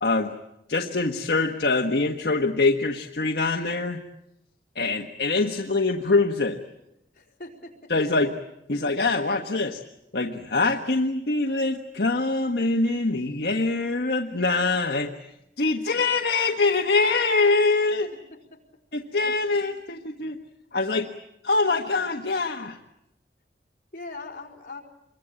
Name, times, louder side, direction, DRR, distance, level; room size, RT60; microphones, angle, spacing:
voice 1, 0.0-0.3 0.7-4.0 4.7-6.6 7.9-8.3 8.7-9.8 10.1-15.1 15.6-18.1 18.9-20.4 20.7-21.1 21.4-22.8, left 3 dB, 70° left, 3 dB, 1.4 m, -24 dB
voice 2, 7.1-8.3 15.9-16.0 18.3-18.6 23.9-24.8, left 3 dB, 50° left, 0 dB, 4.8 m, -41 dB
26.5 x 23.0 x 8.8 m, 0.84 s
head